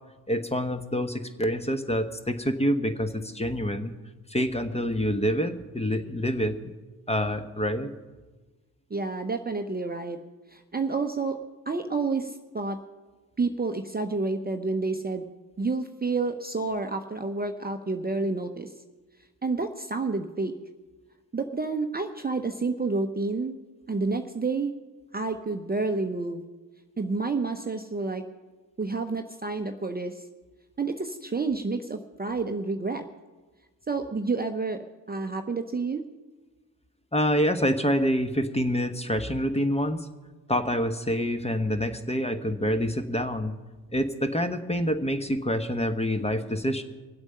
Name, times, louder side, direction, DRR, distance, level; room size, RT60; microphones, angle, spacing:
voice 1, 0.3-3.9 4.3-6.7 7.1-7.9 37.1-40.1 40.5-43.5 43.9-46.8, equal, 15° left, 8 dB, 1.1 m, -27 dB
voice 2, 8.9-10.2 10.5-11.4 11.7-12.8 13.4-15.2 15.6-18.7 19.4-20.5 21.3-23.6 23.9-24.7 25.1-26.4 27.0-28.2 28.8-30.2 30.8-33.0 33.9-36.0, right 3 dB, 20° right, 6 dB, 0.8 m, -29 dB
22.0 x 8.0 x 5.6 m, 1.3 s
hypercardioid pair, 45°, 49 cm